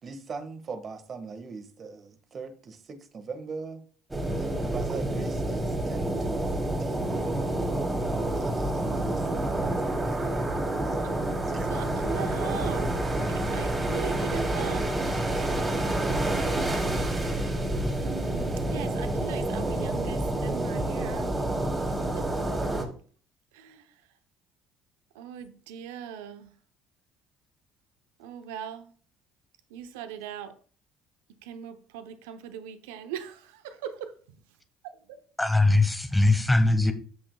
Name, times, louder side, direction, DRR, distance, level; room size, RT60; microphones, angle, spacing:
voice 1, 0.0-3.8 4.4-7.3 7.7-10.2 10.7-11.0 11.5-11.8, right 4 dB, 45° right, 1.7 m, -41 dB
sound 1, 4.1-22.9, right 1 dB, 20° right, 3.2 m, -28 dB
voice 2, 11.6-13.0 13.3-15.0 18.0-21.3 21.8-22.3 22.6-22.7 23.5-24.0 25.1-26.5 28.2-28.9 29.7-30.6 31.4-34.1 35.0-35.2, right 9 dB, 80° right, 0.9 m, -40 dB
voice 3, 35.4-36.9, left 2 dB, 10° left, 1.6 m, -21 dB
13.5 x 6.1 x 2.4 m
hypercardioid pair, 60°, 0 cm